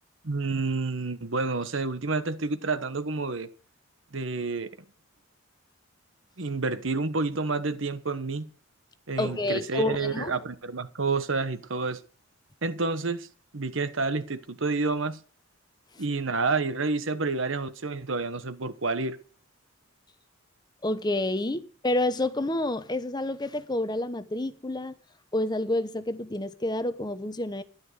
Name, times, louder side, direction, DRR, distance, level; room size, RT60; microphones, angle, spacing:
voice 1, 0.2-3.5 4.1-4.7 6.4-8.5 9.1-12.0 12.6-13.3 13.5-15.2 16.0-19.2, right 3 dB, 70° right, 1.2 m, -29 dB
voice 2, 9.2-10.4 20.8-24.9 25.3-27.6, left 1 dB, 20° left, 0.9 m, -29 dB
12.5 x 11.0 x 6.5 m
head